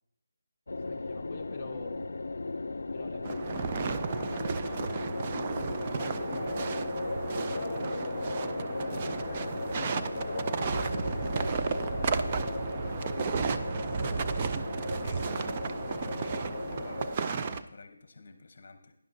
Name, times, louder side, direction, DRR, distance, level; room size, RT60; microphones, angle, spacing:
sound 1, 0.7-17.2, left 3 dB, 75° left, 0.5 m, -36 dB
voice 1, 0.8-2.1 2.9-4.9 5.6-6.8 7.3-8.2 8.8-12.8, left 3 dB, 15° left, -4 dB, 0.9 m, -46 dB
sound 2, 3.2-17.6, right 5 dB, 25° right, 0.3 m, -33 dB
voice 2, 13.5-14.7 14.9-15.6 15.9-18.9, left 4 dB, 45° left, 9 dB, 0.8 m, -51 dB
12.5 x 10.0 x 2.7 m, 0.74 s
figure-of-eight pair, 175°, 0 cm